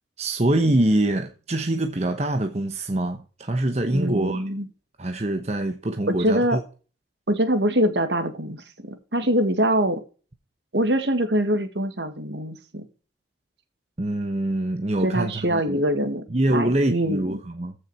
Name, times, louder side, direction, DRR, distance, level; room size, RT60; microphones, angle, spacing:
voice 1, 0.2-4.4 5.0-6.6 14.0-15.8 16.3-17.8, right 1 dB, 35° right, 1.1 m, -24 dB
voice 2, 3.9-4.7 6.1-6.6 7.3-10.0 10.7-12.9 15.0-17.4, right 1 dB, 75° right, 2.2 m, -24 dB
15.0 x 6.7 x 4.5 m
head